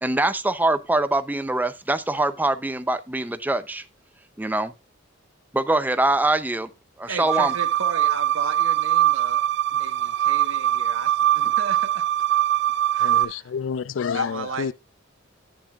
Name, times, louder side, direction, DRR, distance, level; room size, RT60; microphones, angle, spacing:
voice 1, 0.0-3.8 4.4-4.7 5.5-6.7 7.0-7.5, right 2 dB, 10° right, 0.5 m, -23 dB
voice 2, 7.1-9.4 9.8-12.4 12.9-13.5 14.1-14.7, right 4 dB, 90° right, 1.2 m, -35 dB
sound 1, 7.3-13.2, right 12 dB, 60° right, 0.6 m, -22 dB
voice 3, 13.0-14.7, left 6 dB, 70° left, 0.4 m, -28 dB
10.0 x 9.2 x 2.4 m
head